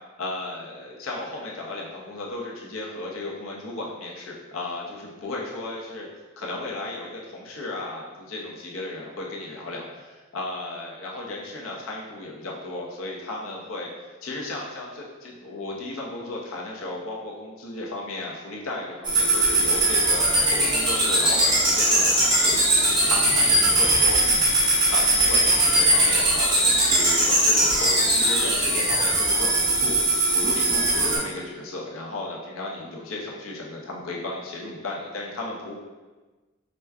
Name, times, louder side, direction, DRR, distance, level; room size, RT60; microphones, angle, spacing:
voice 1, 0.2-6.1 6.4-13.9 14.2-24.2 24.5-35.7, left 2 dB, 85° left, -2 dB, 0.8 m, -35 dB
sound 1, 19.0-31.2, right 1 dB, 25° right, 1.1 m, -20 dB
5.0 x 2.2 x 3.4 m, 1.2 s
head